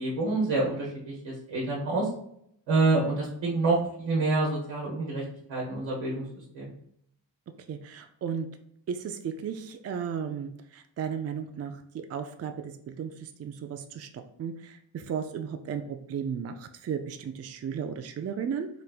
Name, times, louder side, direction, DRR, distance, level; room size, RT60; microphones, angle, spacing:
voice 1, 0.0-2.1 2.7-5.2 5.5-6.2 6.5-6.7, right 3 dB, 75° right, -4 dB, 1.1 m, -27 dB
voice 2, 7.7-8.5 8.9-18.7, right 7 dB, 35° right, 7 dB, 0.4 m, -35 dB
3.2 x 3.1 x 2.4 m, 0.72 s
supercardioid pair, 45°, 45 cm